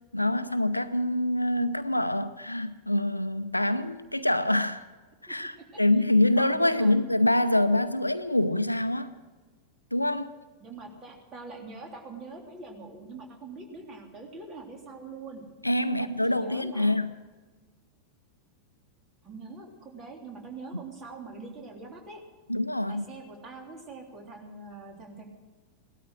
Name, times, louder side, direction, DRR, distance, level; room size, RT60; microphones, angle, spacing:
voice 1, 0.1-4.8 5.2-9.1 9.9-10.3 15.6-17.1 22.5-23.0, left 1 dB, 85° left, 12 dB, 0.7 m, -25 dB
voice 2, 5.3-5.6 6.4-6.9 10.6-15.4 15.9-17.0 19.2-22.2 22.9-25.2, right 3 dB, 30° right, 2 dB, 3.3 m, -43 dB
17.0 x 13.0 x 6.3 m, 1.3 s
figure-of-eight pair, 90°, 0 cm